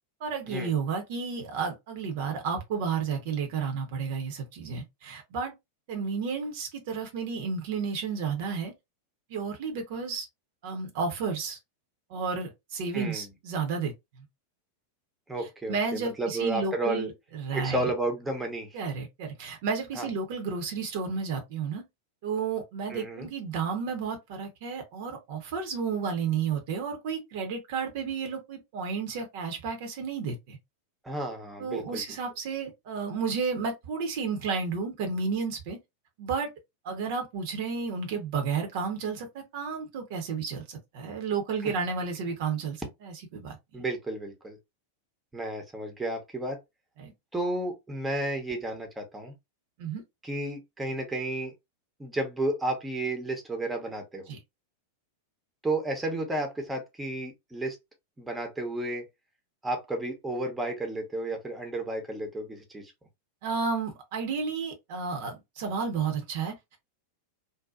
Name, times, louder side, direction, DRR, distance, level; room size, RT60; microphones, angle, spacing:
voice 1, 0.2-5.5 5.9-8.7 9.3-10.3 10.6-11.6 12.1-13.9 15.7-17.9 18.7-21.8 22.2-30.6 31.6-35.8 36.2-36.5 36.8-43.8 47.0-47.1 49.8-50.0 54.3-54.4 63.4-66.8, right 5 dB, 50° right, 0.8 m, -32 dB
voice 2, 12.9-13.2 15.3-17.1 17.5-18.8 19.9-20.1 22.9-23.3 31.0-32.0 41.6-41.7 43.7-44.6 45.3-46.6 47.3-49.3 50.2-51.5 52.0-54.3 55.6-57.8 58.2-59.0 59.6-62.9, right 2 dB, 10° right, 0.8 m, -32 dB
2.7 x 2.2 x 2.3 m
figure-of-eight pair, 90°, 0 cm